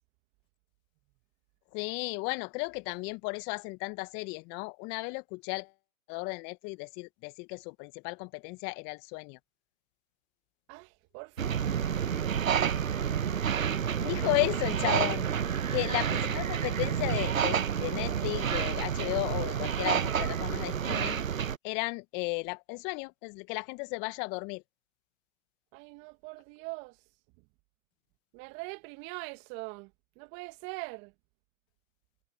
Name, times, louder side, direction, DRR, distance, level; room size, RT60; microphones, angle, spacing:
voice 1, 1.7-5.7 6.1-9.4 14.0-15.2 15.7-24.6, left 29 dB, 25° left, 1.5 m, -34 dB
voice 2, 10.7-11.5 11.9-12.8 15.6-15.9 25.7-27.0 28.3-29.9 30.2-31.1, right 28 dB, 30° right, 2.1 m, -43 dB
sound 1, 11.4-21.6, right 8 dB, 75° right, 1.1 m, -29 dB
figure-of-eight pair, 125°, 41 cm